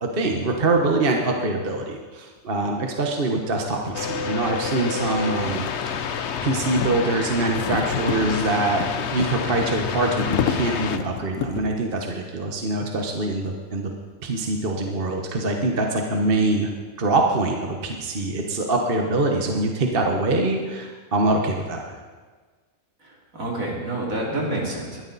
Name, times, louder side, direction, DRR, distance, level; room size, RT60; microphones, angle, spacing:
voice 1, 0.0-6.1 6.4-8.8 9.1-13.9 14.2-16.7 17.0-21.9, right 2 dB, 40° right, 2 dB, 1.4 m, -24 dB
sound 1, 3.8-11.8, left 7 dB, 80° left, 1.3 m, -32 dB
sound 2, 3.9-11.0, left 6 dB, 55° left, 1.0 m, -29 dB
voice 2, 23.0-25.0, right 1 dB, 70° right, -2 dB, 3.6 m, -28 dB
20.5 x 13.0 x 4.1 m, 1.4 s
omnidirectional pair, 1.5 m